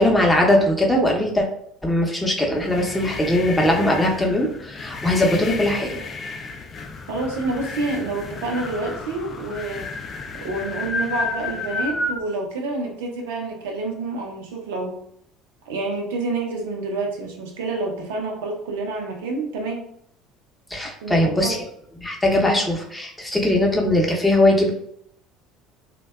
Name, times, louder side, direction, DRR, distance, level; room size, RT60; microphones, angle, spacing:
voice 1, 0.0-1.5 1.8-6.0 20.7-21.6 22.0-24.7, left 1 dB, 10° left, -1 dB, 0.7 m, -20 dB
sound 1, 2.4-12.2, left 3 dB, 40° left, 0.4 m, -32 dB
voice 2, 7.1-9.9 10.4-15.0 15.7-19.9 21.0-21.6, right 3 dB, 80° right, 1 dB, 0.5 m, -28 dB
2.6 x 2.2 x 2.2 m, 0.70 s
hypercardioid pair, 65°, 0 cm